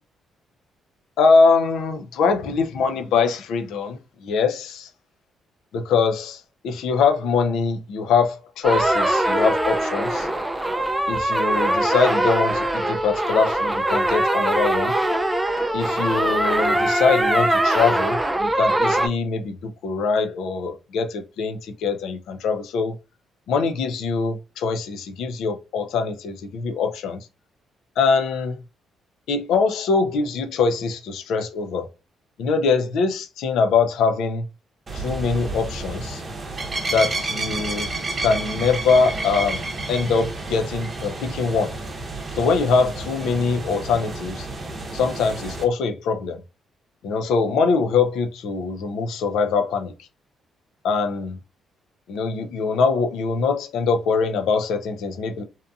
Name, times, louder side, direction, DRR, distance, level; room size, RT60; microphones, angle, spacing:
voice 1, 1.2-4.9 5.7-10.3 11.1-15.0 15.7-23.0 23.5-27.2 28.0-28.6 29.3-31.9 32.4-34.5 34.9-36.2 36.9-37.9 38.2-41.8 42.4-44.5 44.9-46.4 47.0-49.9 50.8-51.4 52.1-55.4, left 5 dB, 80° left, 0.4 m, -23 dB
sound 1, 8.6-19.1, right 1 dB, 10° right, 0.3 m, -22 dB
sound 2, 34.9-45.6, right 2 dB, 35° right, 0.7 m, -30 dB
2.7 x 2.5 x 2.3 m
cardioid pair, 90°, 0 cm